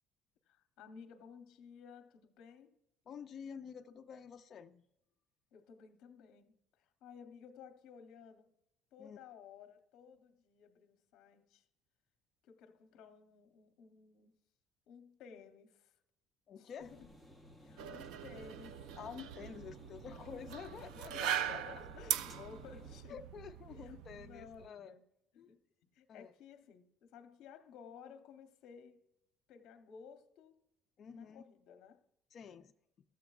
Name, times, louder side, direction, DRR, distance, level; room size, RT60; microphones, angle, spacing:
voice 1, 0.5-2.8 5.5-8.5 8.9-11.7 12.4-14.3 14.9-16.0 16.6-17.1 17.6-19.0 20.9-23.3 23.7-25.0 25.3-29.0 29.5-30.6 31.1-32.0, left 6 dB, 60° left, 0.7 m, -56 dB
voice 2, 3.1-4.9 9.0-9.2 16.5-16.9 19.0-21.6 23.1-24.9 26.1-26.3 31.0-31.4 32.3-32.7, left 7 dB, 30° left, 0.3 m, -49 dB
sound 1, 16.8-23.0, equal, 10° right, 0.6 m, -58 dB
sound 2, 17.8-24.7, right 10 dB, 80° right, 0.3 m, -41 dB
14.0 x 7.6 x 2.3 m
cardioid pair, 175°, 0 cm